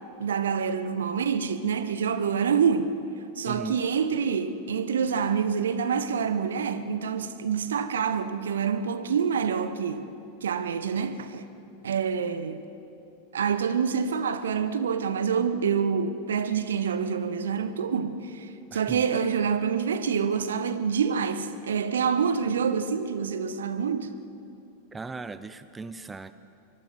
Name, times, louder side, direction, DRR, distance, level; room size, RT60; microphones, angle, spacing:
voice 1, 0.2-3.0 3.4-10.1 10.4-11.4 11.8-12.6 13.3-24.2, right 6 dB, 65° right, 1.2 m, -27 dB
voice 2, 3.5-3.8 18.7-19.1 24.9-26.3, right 4 dB, 10° right, 0.7 m, -38 dB
24.5 x 23.5 x 6.1 m
figure-of-eight pair, 90°, 0 cm